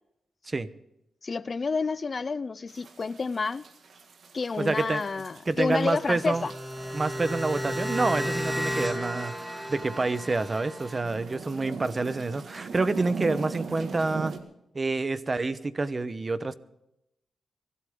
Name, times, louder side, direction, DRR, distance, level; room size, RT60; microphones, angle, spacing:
voice 1, 1.2-3.6 4.3-6.5, left 4 dB, 45° left, 0.4 m, -29 dB
sound 1, 2.7-14.4, right 5 dB, 70° right, 1.8 m, -42 dB
voice 2, 4.6-5.0 5.5-6.5 6.9-9.4 9.7-14.3 14.7-16.5, right 3 dB, 35° right, 1.0 m, -28 dB
sound 2, 5.9-11.0, equal, 10° right, 2.5 m, -33 dB
23.5 x 12.5 x 3.7 m
cardioid pair, 65°, 0 cm